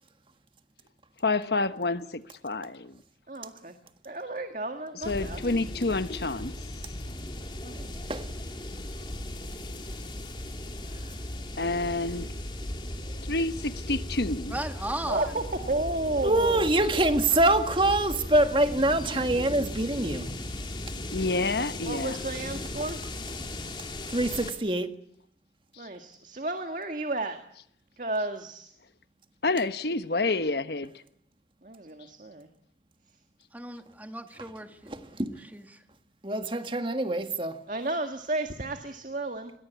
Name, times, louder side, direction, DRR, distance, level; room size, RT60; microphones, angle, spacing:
voice 1, 1.2-2.9 5.0-6.5 11.6-12.3 13.2-14.6 21.1-22.2 29.4-30.9, left 3 dB, 70° left, 1.2 m, -28 dB
voice 2, 3.3-3.7 4.0-5.4 7.6-8.1 15.1-16.8 21.8-23.0 25.8-27.4 28.0-28.7 31.6-32.5 37.7-39.5, right 2 dB, 45° right, 1.9 m, -32 dB
sound 1, 5.0-24.5, left 1 dB, 25° left, 3.3 m, -37 dB
voice 3, 14.5-15.4 33.5-34.9 35.4-35.8, right 1 dB, 10° right, 1.9 m, -36 dB
voice 4, 16.2-20.3 24.1-24.9 34.9-35.3 36.2-37.6, right 1 dB, 30° right, 1.7 m, -25 dB
29.0 x 22.0 x 8.3 m
head